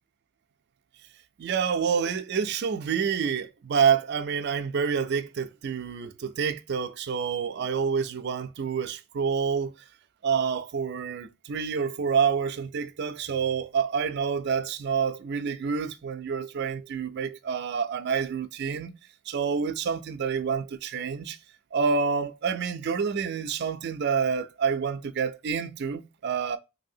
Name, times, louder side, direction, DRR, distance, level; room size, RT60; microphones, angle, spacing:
voice 1, 1.4-9.7 10.2-18.9 19.3-21.4 21.7-26.6, right 6 dB, 50° right, 0.4 m, -28 dB
3.3 x 2.7 x 2.6 m
head